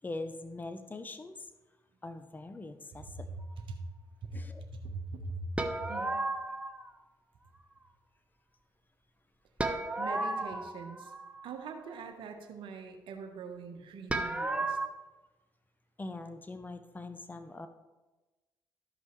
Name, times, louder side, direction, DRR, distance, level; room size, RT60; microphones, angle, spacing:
voice 1, 0.0-1.4 2.0-3.3 4.3-4.7 16.0-17.7, left 2 dB, 20° left, 9 dB, 0.7 m, -42 dB
voice 2, 3.1-3.8 4.2-6.3 10.0-11.1 11.4-14.8, right 3 dB, 65° right, 5 dB, 1.1 m, -42 dB
sound 1, 5.6-6.9 9.6-11.5 14.1-14.9, right 2 dB, 15° right, 0.8 m, -33 dB
13.5 x 5.4 x 3.2 m, 1.2 s
hypercardioid pair, 50°, 9 cm